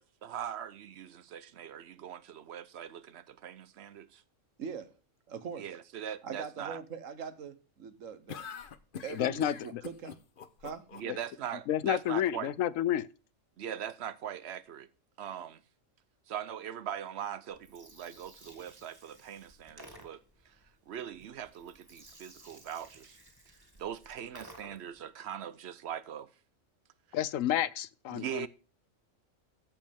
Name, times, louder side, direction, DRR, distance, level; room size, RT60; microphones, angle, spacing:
voice 1, 0.2-4.2 5.6-6.8 10.9-12.5 13.6-14.9 15.2-15.6 16.3-20.5 20.9-23.2 23.8-26.3 27.1-27.2 28.1-28.5, right 9 dB, 60° right, 0.9 m, -41 dB
voice 2, 4.6-4.9 5.3-5.7 6.2-8.5 9.0-10.2 10.6-10.8, right 6 dB, 85° right, 1.4 m, -42 dB
sound 1, 8.3-11.3, left 7 dB, 50° left, 0.9 m, -44 dB
voice 3, 9.1-9.8 11.1-11.2 11.7-13.1 27.1-28.5, left 11 dB, 90° left, 1.0 m, -30 dB
Gurgling, 17.5-25.0, right 1 dB, 15° right, 2.1 m, -55 dB
14.0 x 5.3 x 3.5 m
omnidirectional pair, 1.3 m